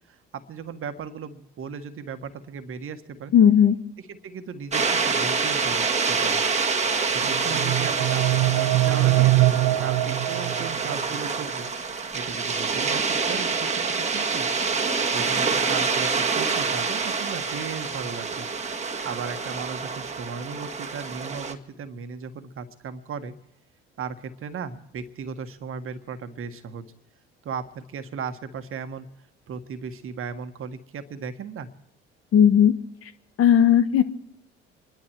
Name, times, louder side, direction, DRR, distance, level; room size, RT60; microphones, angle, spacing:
voice 1, 0.1-3.3 4.1-6.4 7.0-9.3 9.8-11.7 12.1-13.6 13.9-14.5 15.1-18.5 19.0-23.3 24.0-26.8 27.4-29.1 29.5-31.7, right 6 dB, 45° right, 9 dB, 1.5 m, -36 dB
voice 2, 3.3-3.8 32.3-32.7 33.4-34.0, left 9 dB, 50° left, 11 dB, 1.3 m, -16 dB
sound 1, 4.7-21.5, right 5 dB, 25° right, 1.6 m, -26 dB
sound 2, 7.2-11.2, right 16 dB, 65° right, 1.0 m, -23 dB
27.5 x 11.5 x 4.7 m, 0.80 s
hypercardioid pair, 60°, 29 cm